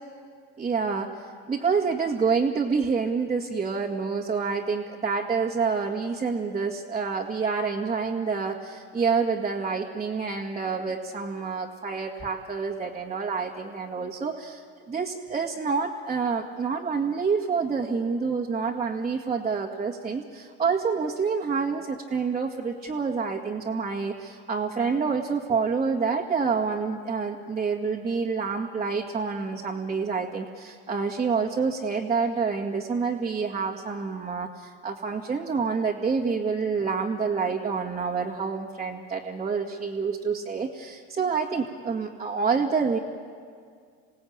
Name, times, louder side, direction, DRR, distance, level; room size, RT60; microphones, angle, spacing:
voice 1, 0.6-43.0, right 5 dB, 20° right, -3 dB, 2.0 m, -28 dB
28.0 x 17.5 x 8.8 m, 2.1 s
supercardioid pair, 95°, 31 cm